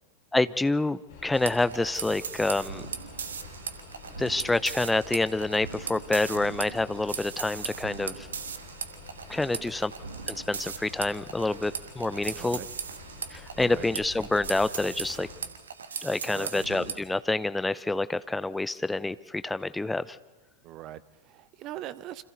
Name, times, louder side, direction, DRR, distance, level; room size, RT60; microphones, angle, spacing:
voice 1, 0.3-2.8 4.2-8.3 9.3-9.9 10.3-12.6 13.3-15.3 16.0-20.2, left 2 dB, 5° left, 16 dB, 0.7 m, -27 dB
sound 1, 1.1-15.4, left 3 dB, 55° left, 5.4 m, -48 dB
sound 2, 1.3-17.0, right 6 dB, 70° right, 1.4 m, -39 dB
voice 2, 12.3-12.7 13.5-13.9 16.2-16.7 20.6-22.2, right 13 dB, 35° right, 17 dB, 1.0 m, -41 dB
28.0 x 26.0 x 4.1 m, 1.3 s
figure-of-eight pair, 90°, 0 cm